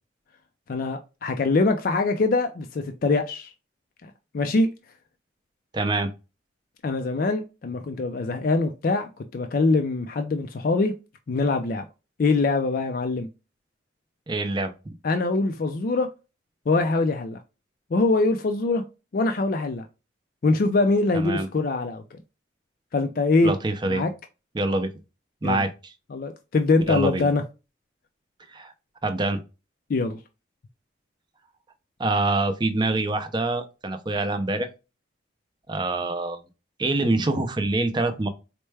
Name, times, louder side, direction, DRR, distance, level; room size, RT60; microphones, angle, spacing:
voice 1, 0.7-3.5 4.0-4.7 6.8-10.9 11.3-11.8 12.2-13.3 15.0-16.1 16.7-17.4 17.9-18.8 19.1-19.8 20.4-22.2 22.9-23.5 23.9-24.1 25.4-25.6 26.1-27.4 29.9-30.2, left 3 dB, 50° left, 0.4 m, -23 dB
voice 2, 5.7-6.1 14.3-14.9 21.1-21.5 23.4-24.0 24.5-24.9 25.4-25.7 26.9-27.3 28.5-28.7 29.0-29.4 32.0-34.7 35.7-36.4 36.8-38.3, right 2 dB, 25° right, 0.5 m, -25 dB
4.3 x 2.2 x 3.2 m
head